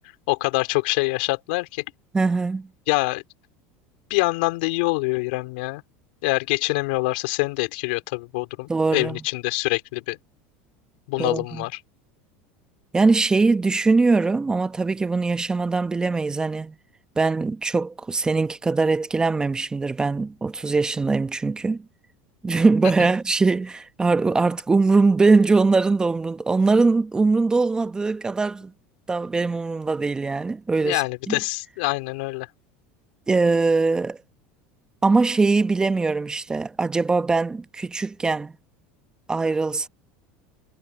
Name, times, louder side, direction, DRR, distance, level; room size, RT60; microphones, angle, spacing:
voice 1, 0.3-1.8 2.9-3.2 4.1-5.8 6.2-10.2 11.1-11.8 23.0-23.1 30.8-32.5, left 24 dB, 75° left, 3.3 m, -25 dB
voice 2, 2.1-2.7 8.7-9.2 11.2-11.6 12.9-16.7 17.2-21.8 22.4-28.7 29.1-31.4 33.3-34.2 35.0-38.5 39.3-39.9, right 3 dB, 15° right, 0.9 m, -21 dB
supercardioid pair, 120°, 5 cm